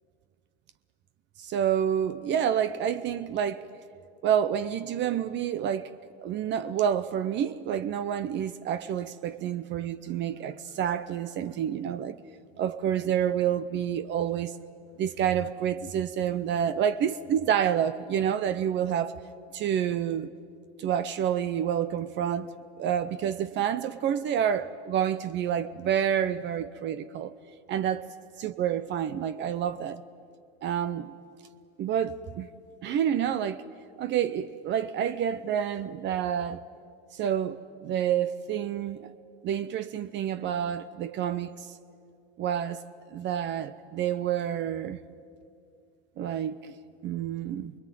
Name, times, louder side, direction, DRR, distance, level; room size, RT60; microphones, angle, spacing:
voice 1, 1.4-3.6 4.2-5.9 6.2-12.2 12.6-14.5 15.0-19.1 19.5-20.3 20.8-22.5 22.8-27.4 27.7-28.1 28.4-30.0 30.6-31.1 31.8-32.5 32.8-33.6 34.0-36.6 37.1-39.1 39.4-41.5 42.4-42.8 43.1-45.0 46.2-46.8 47.0-47.7, right 9 dB, 35° right, 0.7 m, -28 dB
25.0 x 21.5 x 9.2 m
supercardioid pair, 140°, 30 cm